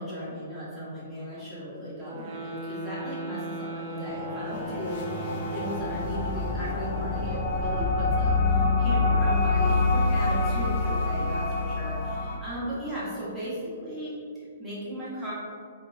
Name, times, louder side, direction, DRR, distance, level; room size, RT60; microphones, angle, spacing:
voice 1, 0.0-15.3, equal, 5° right, -11 dB, 1.1 m, -37 dB
sound 1, 2.0-6.6, right 2 dB, 40° right, 0.4 m, -37 dB
sound 2, 4.1-12.4, left 3 dB, 35° left, 0.5 m, -26 dB
3.7 x 2.7 x 2.7 m, 2.1 s
hypercardioid pair, 155°, 0 cm